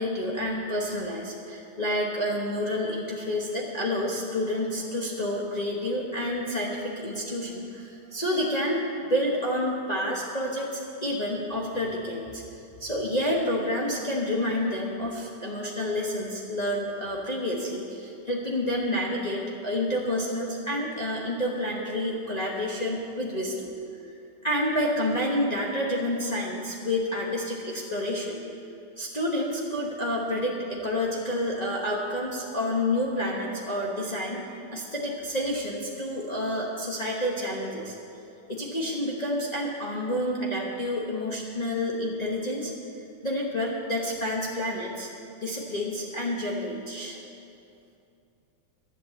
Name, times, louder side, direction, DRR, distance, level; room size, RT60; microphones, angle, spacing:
voice 1, 0.0-12.4 12.8-23.7 24.4-28.4 29.0-37.9 38.5-42.7 43.2-45.1 45.4-47.2, left 1 dB, 30° left, -3 dB, 0.8 m, -29 dB
11.5 x 7.8 x 7.8 m, 2.6 s
omnidirectional pair, 2.4 m